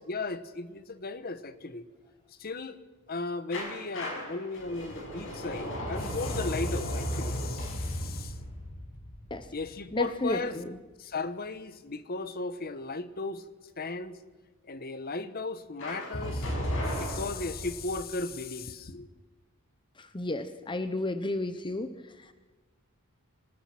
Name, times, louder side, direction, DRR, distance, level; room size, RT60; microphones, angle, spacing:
voice 1, 0.1-1.9 2.4-2.8 3.1-8.3 9.5-10.5 11.0-13.4 13.8-14.2 14.7-16.5 16.8-19.1, left 3 dB, 45° left, 1.2 m, -36 dB
sound 1, 3.5-10.3 15.8-18.0, equal, 65° left, 7.1 m, -35 dB
voice 2, 9.9-10.8 20.0-22.3, left 2 dB, 20° left, 0.8 m, -33 dB
26.5 x 19.5 x 5.9 m
head